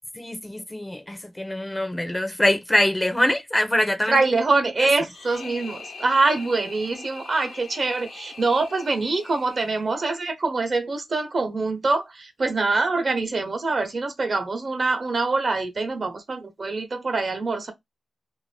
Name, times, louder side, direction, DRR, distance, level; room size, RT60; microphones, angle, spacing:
voice 1, 0.1-4.2 4.8-4.9, left 1 dB, 15° left, 0.5 m, -24 dB
voice 2, 4.1-17.7, right 3 dB, 55° right, 0.8 m, -24 dB
sound 1, 5.0-10.2, left 4 dB, 80° left, 0.5 m, -42 dB
2.5 x 2.1 x 3.2 m
cardioid pair, 65°, 0 cm